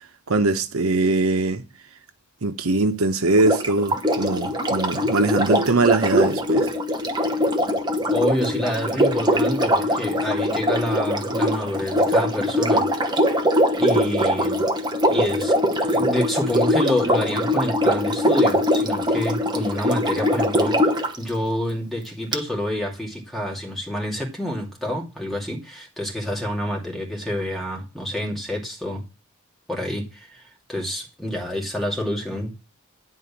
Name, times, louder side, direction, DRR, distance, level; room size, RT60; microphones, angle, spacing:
voice 1, 0.3-1.6 2.4-6.7, right 3 dB, 85° right, 0.9 m, -21 dB
Sink (filling or washing), 3.3-21.2 22.3-22.4, equal, 20° right, 1.0 m, -22 dB
voice 2, 8.1-12.9 13.2-13.3 13.8-14.6 15.1-15.5 15.8-29.0 29.7-32.5, left 1 dB, ahead, 2.5 m, -27 dB
10.5 x 4.3 x 7.0 m
head